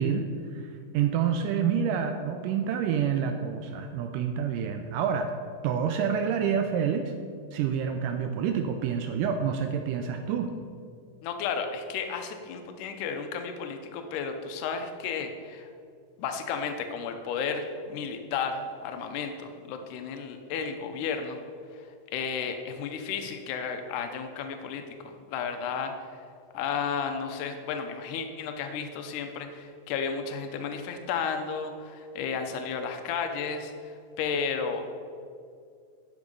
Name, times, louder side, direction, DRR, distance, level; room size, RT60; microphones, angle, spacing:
voice 1, 0.0-5.3 5.6-7.1 7.5-10.5, right 7 dB, 80° right, 6 dB, 2.0 m, -28 dB
voice 2, 11.2-15.7 16.2-21.4 21.7-21.8 22.1-26.2 26.5-34.9, left 6 dB, 75° left, 6 dB, 2.1 m, -33 dB
10.0 x 6.0 x 5.4 m, 2.3 s
omnidirectional pair, 4.1 m